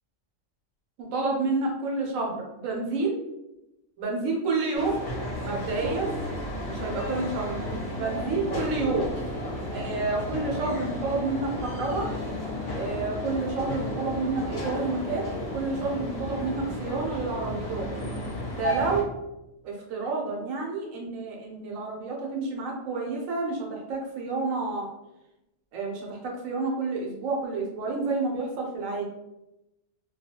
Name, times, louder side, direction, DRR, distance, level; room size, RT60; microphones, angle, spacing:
voice 1, 1.0-3.2 4.0-5.0 5.4-6.1 6.7-9.1 9.7-12.1 12.7-15.3 15.5-17.9 18.5-19.1 19.6-24.9 25.7-29.0, right 3 dB, 80° right, -1 dB, 1.0 m, -29 dB
sound 1, 4.7-19.0, left 1 dB, 40° left, 0.5 m, -33 dB
2.3 x 2.2 x 2.7 m, 0.92 s
omnidirectional pair, 1.4 m